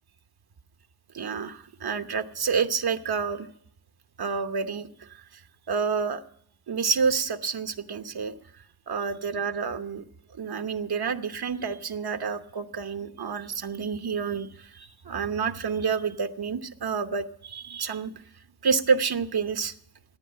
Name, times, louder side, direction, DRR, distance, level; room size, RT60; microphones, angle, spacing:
voice 1, 1.1-3.5 4.2-4.9 5.7-6.2 6.7-8.3 8.9-10.0 10.3-18.1 18.6-19.7, right 5 dB, 85° right, 8 dB, 1.0 m, -28 dB
16.0 x 9.5 x 7.5 m, 0.66 s
wide cardioid pair, 100°, 37 cm